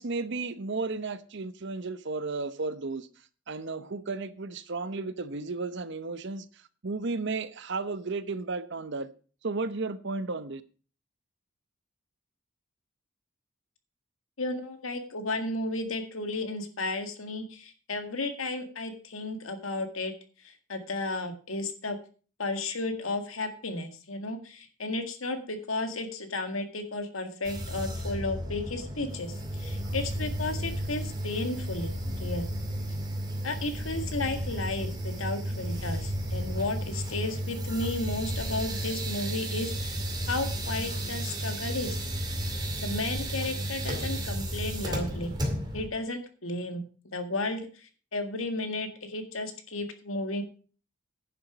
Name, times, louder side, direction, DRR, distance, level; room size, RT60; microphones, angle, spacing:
voice 1, 0.0-3.1 3.5-6.5 6.8-9.1 9.4-10.6, right 3 dB, 60° right, 0.8 m, -33 dB
voice 2, 14.4-20.1 20.4-22.0 22.4-31.9 32.2-32.5 33.4-40.0 40.3-42.0 42.8-45.3 45.7-46.8 47.1-50.4, left 2 dB, 80° left, 1.8 m, -33 dB
sound 1, 27.4-45.9, equal, 20° right, 2.2 m, -33 dB
11.0 x 7.0 x 6.0 m
head